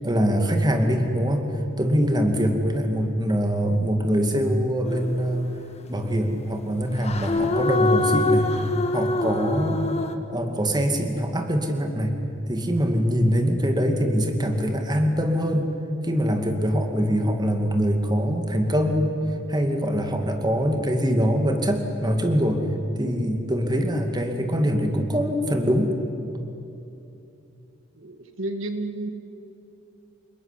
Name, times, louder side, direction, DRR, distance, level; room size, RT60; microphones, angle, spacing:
voice 1, 0.0-1.5 1.8-5.6 5.9-8.5 8.9-9.9 10.3-12.1 12.5-15.7 16.0-19.1 19.5-22.6 23.0-25.9, equal, 20° right, 5 dB, 2.4 m, -23 dB
sound 1, 4.9-5.5 7.0-10.2, left 2 dB, 35° left, 1.7 m, -24 dB
voice 2, 27.9-29.1, right 2 dB, 80° right, 7 dB, 2.1 m, -32 dB
29.0 x 20.5 x 10.0 m, 2.8 s
head